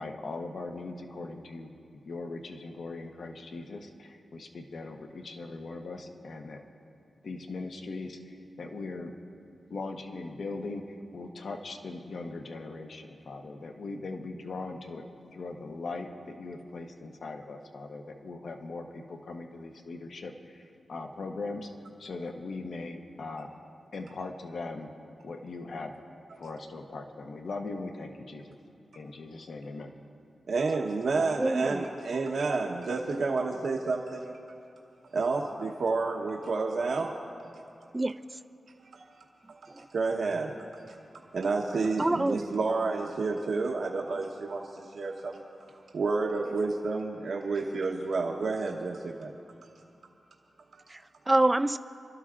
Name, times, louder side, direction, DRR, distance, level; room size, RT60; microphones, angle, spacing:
voice 1, 0.0-1.7 2.1-6.6 7.2-9.1 9.7-15.0 15.3-20.6 20.9-21.7 22.0-23.5 23.9-24.9 25.2-25.9 26.4-28.6 28.9-29.9, left 3 dB, 70° left, 4 dB, 1.0 m, -40 dB
voice 2, 30.5-34.4 35.1-37.1 37.4-37.5 38.9-39.1 39.5-40.8 41.3-45.4 45.9-49.3 50.7-50.8, right 3 dB, 75° right, -1 dB, 1.0 m, -30 dB
voice 3, 31.4-31.9 37.9-38.4 39.7-39.9 42.0-42.4 50.9-51.8, right 2 dB, 20° right, 11 dB, 0.3 m, -27 dB
29.0 x 12.5 x 2.5 m, 2.5 s
cardioid pair, 80°, 0 cm